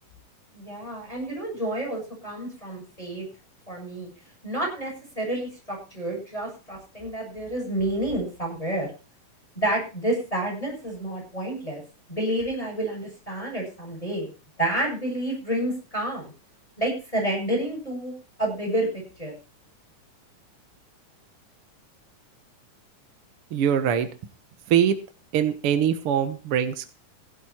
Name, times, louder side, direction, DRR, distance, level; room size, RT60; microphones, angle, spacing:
voice 1, 0.5-3.3 3.7-4.1 4.4-8.9 9.6-11.8 12.1-14.3 14.6-16.3 16.8-18.1 18.4-18.9 19.2-19.3, right 1 dB, 10° left, -1 dB, 7.7 m, -29 dB
voice 2, 23.5-24.1 24.7-24.9 25.3-26.9, right 9 dB, 60° right, 10 dB, 1.6 m, -22 dB
16.0 x 10.5 x 4.5 m, 0.33 s
omnidirectional pair, 3.6 m